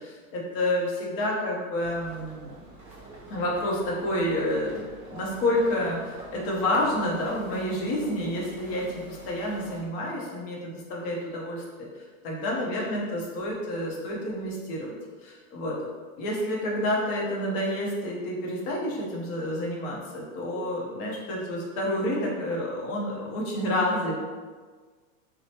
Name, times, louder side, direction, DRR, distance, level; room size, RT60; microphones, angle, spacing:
voice 1, 0.0-2.5 3.3-4.8 5.1-11.6 12.2-15.0 15.2-15.9 16.2-24.1, left 1 dB, 30° left, -3 dB, 0.6 m, -29 dB
sound 1, 1.8-9.8, right 1 dB, 15° right, 0.6 m, -46 dB
2.9 x 2.0 x 2.7 m, 1.5 s
supercardioid pair, 145°, 43 cm